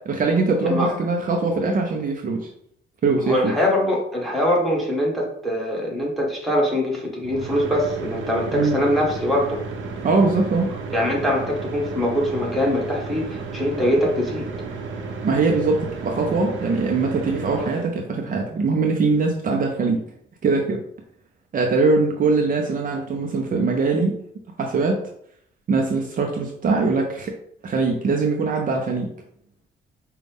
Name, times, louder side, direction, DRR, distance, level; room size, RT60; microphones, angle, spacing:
voice 1, 0.1-2.5 3.0-3.5 8.5-8.8 10.0-10.7 15.2-20.0 20.4-20.8 21.5-24.2 24.6-25.0 25.7-27.3 27.6-29.1, right 3 dB, 45° right, 1 dB, 0.6 m, -22 dB
voice 2, 3.2-9.6 10.9-14.5, left 1 dB, ahead, -3 dB, 1.5 m, -23 dB
sound 1, 7.2-17.9, right 4 dB, 75° right, 0.8 m, -33 dB
5.1 x 2.3 x 3.5 m, 0.69 s
cardioid pair, 90°, 20 cm